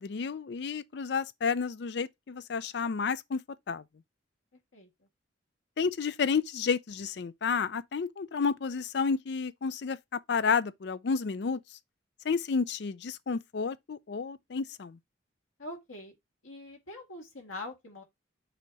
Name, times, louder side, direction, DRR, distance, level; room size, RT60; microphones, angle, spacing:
voice 1, 0.0-3.4 3.7-3.8 5.8-11.6 12.2-15.0, left 5 dB, 55° left, 0.4 m, -31 dB
voice 2, 15.6-16.1 16.4-18.0, left 2 dB, 90° left, 1.9 m, -43 dB
6.9 x 2.9 x 4.6 m
head